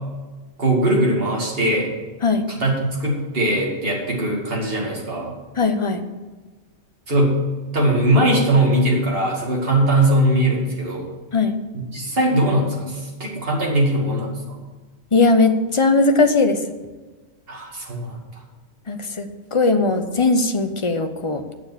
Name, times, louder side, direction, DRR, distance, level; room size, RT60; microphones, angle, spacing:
voice 1, 0.6-1.9 2.5-5.3 7.1-7.4 7.7-11.1 11.9-14.4 17.5-18.2, right 1 dB, 50° right, -2 dB, 2.6 m, -20 dB
voice 2, 5.6-6.0 11.3-11.6 15.1-16.6 18.9-21.4, left 3 dB, 30° left, 7 dB, 0.8 m, -19 dB
9.2 x 7.0 x 7.9 m, 1.3 s
omnidirectional pair, 1.3 m